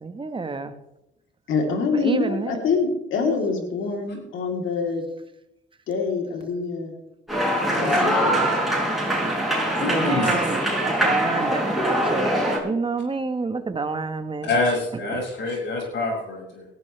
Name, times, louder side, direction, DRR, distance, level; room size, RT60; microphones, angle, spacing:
voice 1, 0.0-0.7 1.9-2.6 9.0-9.4 9.7-14.5 15.1-15.2, right 4 dB, 25° right, 1.6 m, -29 dB
voice 2, 1.5-5.0 5.9-6.9 7.7-8.5, left 4 dB, 80° left, 3.7 m, -25 dB
sound 1, 7.3-12.6, right 1 dB, ahead, 6.8 m, -23 dB
voice 3, 9.8-10.4 14.4-16.7, left 2 dB, 65° left, 6.8 m, -26 dB
18.0 x 14.5 x 3.5 m
cardioid pair, 90°, 20 cm